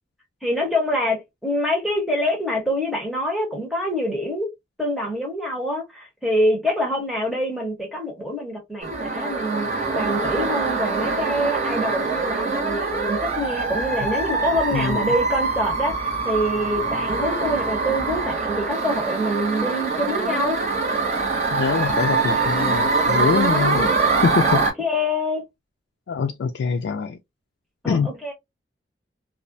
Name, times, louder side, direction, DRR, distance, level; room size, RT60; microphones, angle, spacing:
voice 1, 0.4-4.5 4.8-9.7 9.9-20.6 24.5-25.4 27.8-28.3, equal, ahead, 0.8 m, -25 dB
sound 1, 8.8-24.7, right 3 dB, 40° right, 0.7 m, -24 dB
voice 2, 14.7-15.1 21.5-24.6 26.1-27.2 27.8-28.1, left 5 dB, 80° left, 0.3 m, -24 dB
2.3 x 2.1 x 2.5 m
head